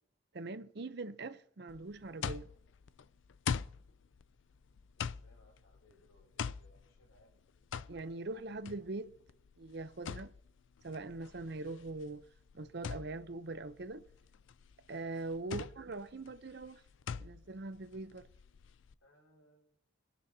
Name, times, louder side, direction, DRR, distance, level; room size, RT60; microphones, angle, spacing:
voice 1, 0.3-2.5 7.9-9.1 9.6-10.3 10.8-12.2 12.5-14.0 14.9-16.8 17.2-18.3, right 3 dB, 55° right, 0.7 m, -42 dB
sound 1, 1.7-18.9, left 6 dB, 70° left, 0.4 m, -43 dB
voice 2, 4.9-7.6 15.4-15.6 19.0-19.8, left 1 dB, 90° left, 6.1 m, -67 dB
21.5 x 10.0 x 2.8 m
head